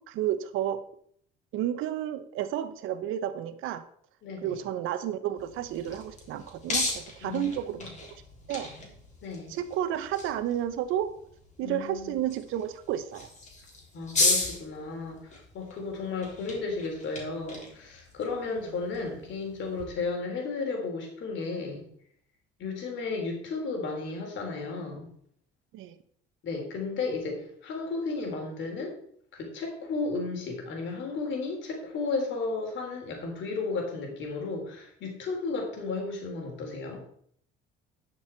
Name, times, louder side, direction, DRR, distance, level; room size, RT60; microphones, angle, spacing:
voice 1, 0.1-0.8 1.5-3.8 4.4-8.2 8.5-8.7 9.5-11.1 11.6-13.3 18.6-18.7 25.7-26.0, right 11 dB, 75° right, 12 dB, 0.9 m, -31 dB
voice 2, 4.2-4.6 7.2-7.9 9.2-9.6 11.6-12.2 13.9-21.8 22.6-25.1 26.4-29.0 29.3-37.0, left 3 dB, 65° left, 1 dB, 3.6 m, -34 dB
sound 1, 5.4-19.8, left 2 dB, 35° left, 3.7 m, -36 dB
11.5 x 6.3 x 4.5 m, 0.64 s
supercardioid pair, 85°, 21 cm